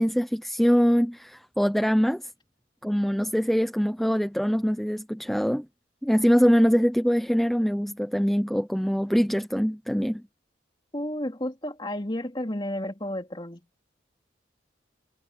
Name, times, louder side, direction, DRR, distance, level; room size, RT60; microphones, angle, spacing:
voice 1, 0.0-2.3 2.8-5.7 6.0-10.2, equal, ahead, 0.7 m, -23 dB
voice 2, 10.9-13.7, left 1 dB, 25° left, 3.2 m, -32 dB
head